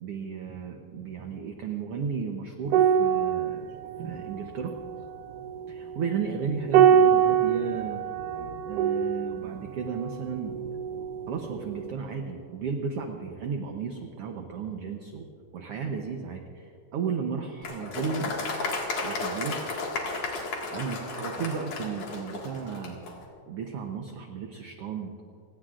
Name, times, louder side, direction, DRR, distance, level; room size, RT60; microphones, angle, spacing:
voice 1, 0.0-3.6 4.0-4.7 5.7-8.0 8.6-15.3 15.5-18.3 19.0-19.6 20.7-23.0 23.5-25.1, right 6 dB, 70° right, 3 dB, 1.4 m, -34 dB
sound 1, 2.7-11.4 11.7-11.9, right 8 dB, 85° right, 2.4 m, -25 dB
Applause, 17.6-23.2, left 3 dB, 60° left, 3.1 m, -33 dB
29.0 x 17.5 x 2.5 m, 2.4 s
omnidirectional pair, 3.7 m